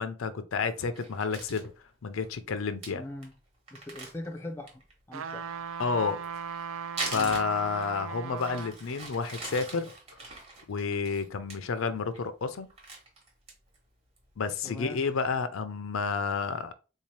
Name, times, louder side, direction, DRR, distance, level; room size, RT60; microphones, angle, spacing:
voice 1, 0.0-1.7 2.0-3.0 5.8-6.2 7.1-9.9 10.7-12.7 14.4-16.7, left 5 dB, 85° left, 0.5 m, -30 dB
Crumpling crinkling, 0.9-1.7 2.2-2.3 2.6-2.7 2.8-2.9 3.2-3.3 3.7-4.9 6.1-8.0 8.4-11.6 12.0-12.2 12.5-13.8 14.2-14.3 14.7-15.1, right 3 dB, 30° right, 1.0 m, -41 dB
voice 2, 2.9-3.3 3.7-4.8 5.1-5.5 7.1-7.4 14.6-15.0, left 1 dB, 10° left, 0.4 m, -41 dB
sound 1, 5.1-8.8 9.3-9.4, right 7 dB, 80° right, 0.4 m, -38 dB
3.9 x 2.8 x 3.1 m
head